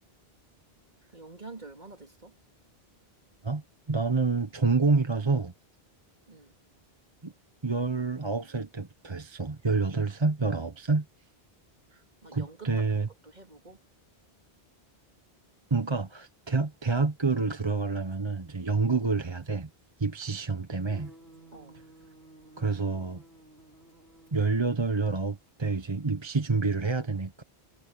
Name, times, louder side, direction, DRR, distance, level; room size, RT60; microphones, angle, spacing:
voice 1, 1.1-2.3 6.3-6.5 12.2-12.9 13.2-13.8 21.5-21.8, right 3 dB, 45° right, 3.3 m, -47 dB
voice 2, 3.9-5.5 7.2-7.3 7.6-11.1 12.3-13.1 15.7-19.7 20.0-21.1 22.6-23.2 24.3-27.4, right 4 dB, 30° right, 1.0 m, -28 dB
sound 1, 17.0-17.1 17.4-17.6 18.0-18.1 19.4-19.9 20.2-20.3 20.6-26.0, right 1 dB, 70° right, 4.4 m, -55 dB
omnidirectional pair, 1.0 m